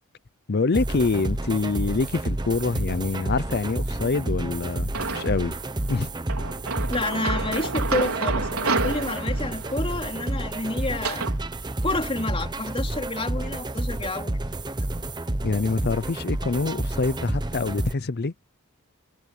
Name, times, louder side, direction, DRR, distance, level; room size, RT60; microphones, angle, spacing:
voice 1, 0.5-5.5 5.9-6.1 15.4-18.3, left 3 dB, 45° left, 0.6 m, -25 dB
sound 1, 0.7-17.9, right 1 dB, 20° right, 0.9 m, -30 dB
sound 2, 4.9-5.6 6.3-11.4, right 4 dB, 80° right, 4.6 m, -30 dB
voice 2, 6.9-11.3 11.8-14.4, left 2 dB, 25° left, 4.0 m, -29 dB
head